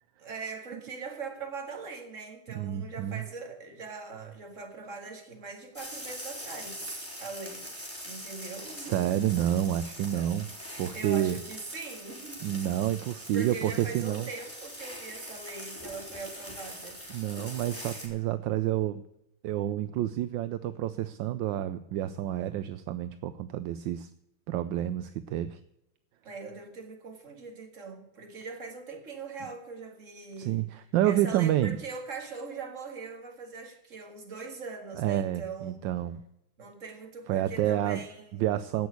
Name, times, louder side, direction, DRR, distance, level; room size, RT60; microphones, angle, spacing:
voice 1, 0.2-7.7 8.0-9.2 10.1-10.3 10.9-12.6 13.3-17.0 26.2-30.7 31.0-35.7 36.6-38.3, right 4 dB, 40° right, 2.4 m, -41 dB
voice 2, 2.5-3.2 8.7-10.5 10.8-11.4 12.4-14.3 17.1-19.0 19.4-24.1 24.5-25.6 30.4-31.8 34.9-36.2 37.3-38.0 38.4-38.9, right 12 dB, 75° right, 1.3 m, -29 dB
sound 1, 5.7-18.1, equal, 5° left, 3.9 m, -43 dB
16.5 x 6.2 x 8.0 m
omnidirectional pair, 2.1 m